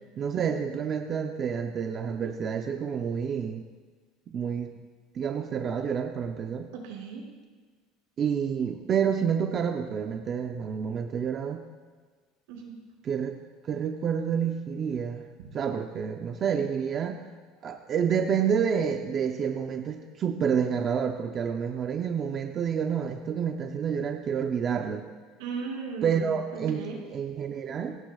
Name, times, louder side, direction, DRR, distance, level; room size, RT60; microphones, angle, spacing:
voice 1, 0.2-3.6 4.3-4.8 5.1-6.7 8.2-11.6 13.0-13.3 13.6-15.2 15.5-17.2 17.6-25.0 26.0-28.0, right 7 dB, 25° right, 4 dB, 0.7 m, -29 dB
voice 2, 6.8-7.2 12.5-12.7 25.4-27.0, right 5 dB, 80° right, -2 dB, 5.9 m, -37 dB
22.5 x 18.0 x 2.4 m, 1.4 s
cardioid pair, 170°, 0 cm